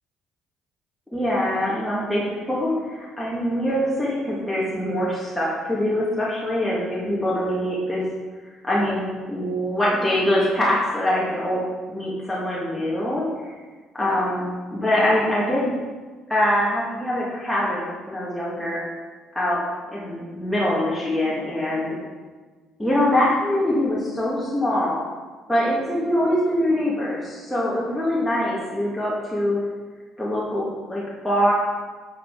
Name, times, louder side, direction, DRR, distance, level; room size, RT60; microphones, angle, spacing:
voice 1, 1.1-8.0 8.6-9.0 9.3-11.6 11.9-13.2 13.9-14.5 14.7-15.7 16.3-18.8 19.3-19.6 19.9-21.9 22.8-25.0 25.5-29.6 30.2-31.5, left 1 dB, 5° left, -8 dB, 2.2 m, -23 dB
8.0 x 5.9 x 4.9 m, 1.4 s
supercardioid pair, 80°, 0 cm